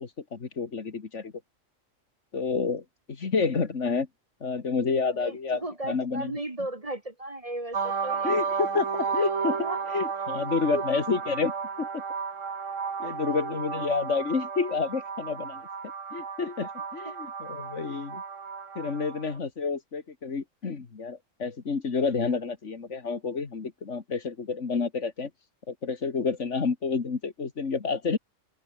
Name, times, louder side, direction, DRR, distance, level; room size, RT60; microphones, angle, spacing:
voice 1, 0.0-1.3 2.3-4.1 4.4-6.3 8.2-9.6 9.9-11.5 11.8-12.0 13.0-15.6 16.1-18.2 18.8-25.3 25.7-28.2, left 4 dB, 65° left, 2.2 m, -29 dB
voice 2, 5.2-8.3 9.1-9.2 9.4-10.0 10.3-10.4 10.7-10.8 13.0-13.4 17.0-17.1, right 1 dB, 25° right, 1.7 m, -36 dB
sound 1, 7.7-19.3, right 5 dB, 75° right, 2.1 m, -33 dB
open air
omnidirectional pair, 1.4 m